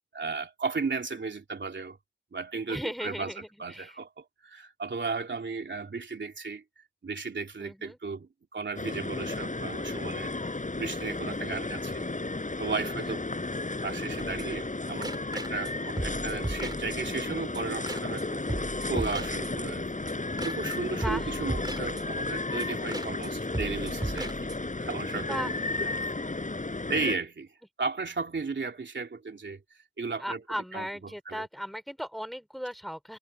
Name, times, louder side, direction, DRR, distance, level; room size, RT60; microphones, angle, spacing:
voice 1, 0.1-2.0 2.3-6.6 7.0-10.3 10.8-12.1 12.6-13.2 13.8-18.5 18.9-20.0 20.4-24.5 24.8-25.9 26.9-27.5 27.8-29.6 30.0-30.4 30.7-31.5, right 4 dB, 85° right, 3.2 m, -35 dB
voice 2, 2.7-4.0 7.6-8.0 12.8-13.2 21.0-21.4 25.1-25.6 30.2-33.2, equal, ahead, 3.8 m, -37 dB
sound 1, 8.8-27.2, left 2 dB, 45° left, 4.8 m, -33 dB
sound 2, 14.2-14.7 15.0-15.7 16.0-17.3 17.5-17.6 17.9-18.2 18.5-19.8 20.1-20.2 20.4-20.8 21.0-22.3 22.6-22.7 22.9-23.3 23.5-24.8, right 1 dB, 20° right, 3.5 m, -36 dB
wide cardioid pair, 70°, 19 cm